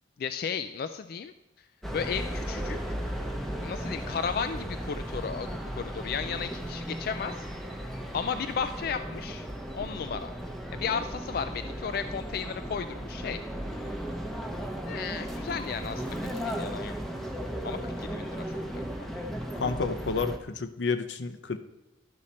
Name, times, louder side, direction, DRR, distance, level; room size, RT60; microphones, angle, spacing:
voice 1, 0.2-1.3 1.9-2.8 3.6-5.5 5.8-7.5 8.1-9.5 9.7-10.3 10.7-13.4 14.9-16.9 17.6-18.8, left 6 dB, 55° left, 9 dB, 0.3 m, -34 dB
sound 1, 1.8-20.4, equal, ahead, 0.7 m, -36 dB
voice 2, 19.6-21.6, left 4 dB, 85° left, 10 dB, 0.7 m, -30 dB
11.5 x 6.4 x 4.2 m, 0.96 s
head